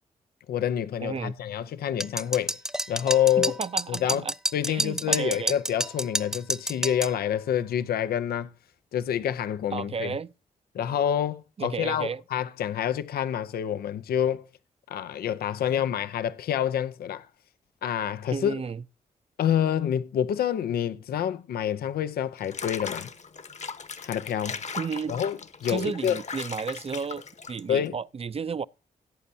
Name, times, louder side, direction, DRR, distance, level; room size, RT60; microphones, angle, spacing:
voice 1, 0.5-2.6 2.9-3.6 3.9-4.2 4.5-8.5 8.9-10.1 10.7-14.4 14.9-17.3 17.8-18.6 19.4-23.1 24.0-24.6 25.1-26.2 27.7-27.9, left 9 dB, 85° left, 0.6 m, -27 dB
voice 2, 1.0-1.3 3.4-4.3 4.7-5.5 9.7-10.3 11.6-12.2 18.3-18.8 24.8-25.2 25.7-28.7, right 6 dB, 40° right, 0.6 m, -33 dB
sound 1, 2.0-7.1, right 1 dB, 5° right, 0.9 m, -29 dB
Water / Bathtub (filling or washing), 22.4-27.9, left 5 dB, 50° left, 1.2 m, -38 dB
17.0 x 8.3 x 2.8 m
cardioid pair, 65°, 15 cm